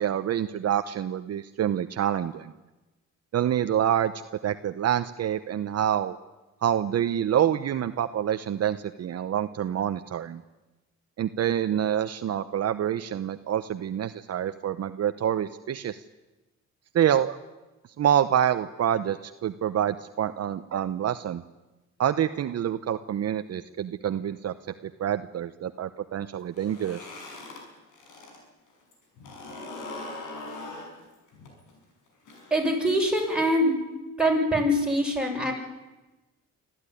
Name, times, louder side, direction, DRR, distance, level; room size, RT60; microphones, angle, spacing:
voice 1, 0.0-2.5 3.3-4.1 4.4-6.2 6.6-10.4 11.2-16.0 16.9-17.4 18.0-21.4 22.0-24.5 24.8-27.1, right 10 dB, 55° right, 10 dB, 0.9 m, -27 dB
sound 1, 26.4-28.4 28.7-33.5, left 2 dB, 90° left, 6.2 m, -42 dB
voice 2, 32.5-33.8 34.2-35.5, equal, 5° right, -1 dB, 7.4 m, -23 dB
24.5 x 14.0 x 10.0 m, 1.1 s
cardioid pair, 90°, 30 cm